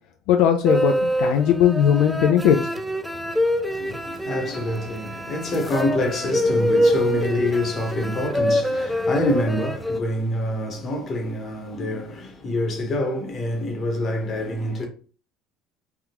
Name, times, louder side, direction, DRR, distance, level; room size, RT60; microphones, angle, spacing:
voice 1, 0.3-2.7, left 9 dB, 75° left, 0.4 m, -18 dB
sound 1, 0.7-10.0, equal, ahead, 0.3 m, -25 dB
voice 2, 3.7-14.9, left 1 dB, 35° left, 1.0 m, -26 dB
3.4 x 2.3 x 2.9 m
supercardioid pair, 110°, 0 cm